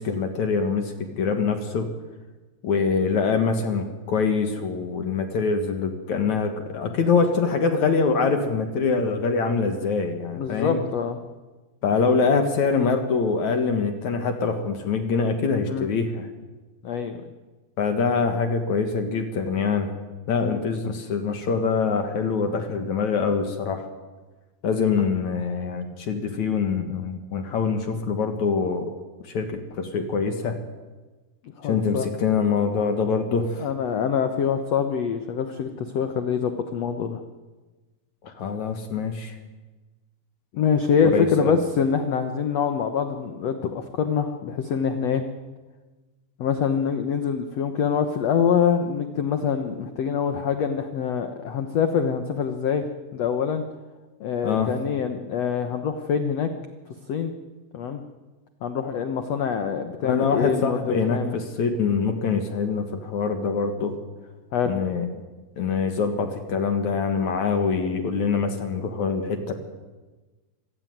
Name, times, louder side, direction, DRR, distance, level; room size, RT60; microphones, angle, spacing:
voice 1, 0.0-1.9 2.6-10.8 11.8-16.3 17.8-19.9 20.3-23.9 24.6-28.9 29.2-30.6 31.6-33.6 38.2-39.3 41.1-41.6 54.4-54.7 60.0-64.0 64.7-65.1 65.6-69.5, left 5 dB, 55° left, 7 dB, 2.5 m, -24 dB
voice 2, 10.3-11.2 15.7-15.9 16.8-17.2 20.4-20.6 31.6-32.1 33.6-37.2 40.5-45.2 46.4-52.9 53.1-53.6 54.2-56.5 57.1-57.3 57.7-58.0 58.6-61.4 64.5-64.7, left 7 dB, 80° left, 8 dB, 1.4 m, -25 dB
25.5 x 16.5 x 9.3 m, 1.3 s
omnidirectional pair, 4.8 m